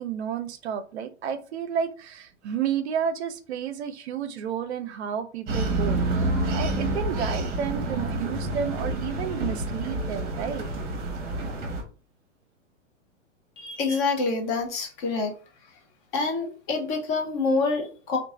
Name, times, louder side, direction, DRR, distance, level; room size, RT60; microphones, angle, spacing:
voice 1, 0.0-10.7, right 8 dB, 55° right, 11 dB, 0.5 m, -31 dB
sound 1, 5.5-11.8, right 2 dB, 25° right, 0.9 m, -28 dB
voice 2, 13.6-15.3 15.6-15.8 16.1-18.2, left 3 dB, 35° left, 3 dB, 0.9 m, -27 dB
3.1 x 2.4 x 3.4 m, 0.38 s
figure-of-eight pair, 110°, 40 cm